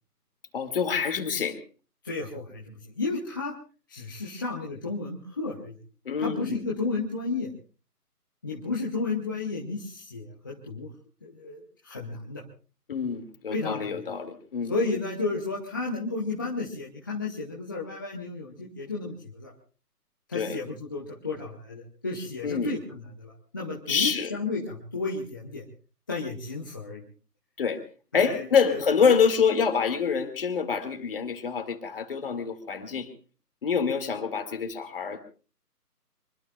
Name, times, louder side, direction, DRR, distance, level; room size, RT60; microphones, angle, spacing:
voice 1, 0.5-1.6 6.0-6.6 12.9-14.7 20.3-20.6 22.4-22.8 23.9-24.3 27.6-27.8 28.1-33.1 33.6-35.2, left 6 dB, 35° left, 7 dB, 2.4 m, -26 dB
voice 2, 2.0-3.5 3.9-5.7 6.2-7.5 8.4-10.9 11.2-12.4 13.5-13.9 14.7-19.5 20.3-25.6 26.1-27.0 28.1-28.8, left 3 dB, 15° left, -3 dB, 0.9 m, -33 dB
24.5 x 23.5 x 2.4 m, 0.36 s
figure-of-eight pair, 150°, 47 cm